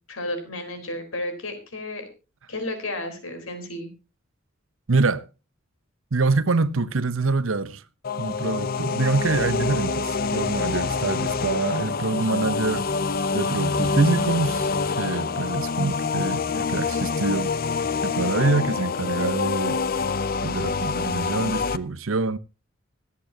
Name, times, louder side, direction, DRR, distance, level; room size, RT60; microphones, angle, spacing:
voice 1, 0.1-2.1 2.5-3.9 10.2-10.5, left 1 dB, 85° left, 4.1 m, -33 dB
voice 2, 4.9-5.2 6.1-7.8 8.2-12.9 13.3-14.7 15.0-17.5 18.0-19.8 20.4-22.4, right 3 dB, 75° right, 0.8 m, -25 dB
sound 1, 8.0-21.8, left 4 dB, 45° left, 0.6 m, -26 dB
25.5 x 8.6 x 2.9 m
head